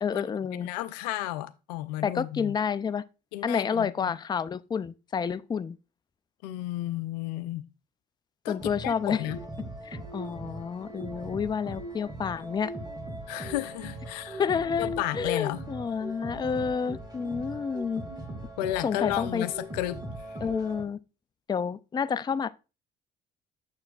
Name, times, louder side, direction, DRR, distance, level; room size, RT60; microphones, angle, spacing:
voice 1, 0.0-0.7 2.0-3.0 3.4-5.8 8.5-9.2 9.8-12.7 14.4-18.0 18.8-19.4 20.4-21.0 21.5-22.5, left 6 dB, 20° left, 0.4 m, -29 dB
voice 2, 0.6-2.6 3.3-4.1 6.4-7.7 8.4-8.6 8.8-9.4 13.3-14.4 14.8-15.6 18.6-20.0 20.3-20.4, left 15 dB, 80° left, 0.5 m, -32 dB
sound 1, 8.6-20.8, right 1 dB, 20° right, 2.2 m, -40 dB
7.0 x 6.6 x 2.3 m
hypercardioid pair, 55°, 21 cm